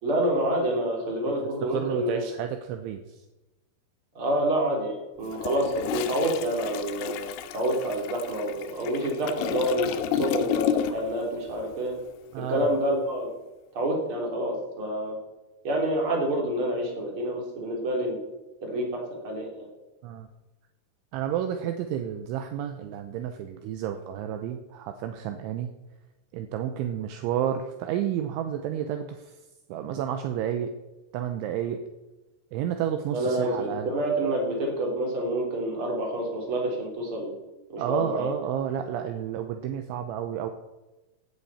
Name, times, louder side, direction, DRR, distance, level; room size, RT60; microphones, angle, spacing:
voice 1, 0.0-2.2 4.2-11.9 12.5-13.3 13.7-15.2 15.6-18.2 18.6-19.7 33.1-37.4 37.7-38.3, right 1 dB, 30° right, -1 dB, 3.6 m, -28 dB
voice 2, 1.7-3.0 12.3-12.7 20.0-20.3 21.1-25.7 26.3-29.2 29.7-30.7 31.1-31.8 32.5-33.9 37.8-40.5, right 10 dB, 80° right, 7 dB, 3.0 m, -31 dB
Toilet flush, 5.2-11.2 11.5-11.8, left 10 dB, 85° left, 3.5 m, -32 dB
16.0 x 11.5 x 4.3 m, 1.1 s
omnidirectional pair, 5.8 m